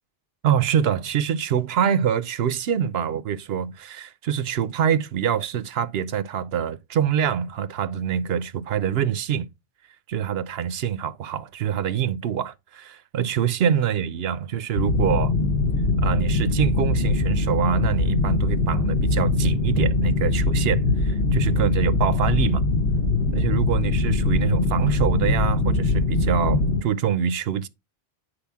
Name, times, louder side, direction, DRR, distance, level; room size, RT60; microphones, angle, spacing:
voice 1, 0.4-9.5 10.1-15.3 16.0-22.6 23.3-27.7, right 8 dB, 75° right, 0.9 m, -25 dB
sound 1, 14.7-26.8, left 3 dB, 85° left, 1.1 m, -22 dB
8.9 x 5.0 x 3.5 m
omnidirectional pair, 1.1 m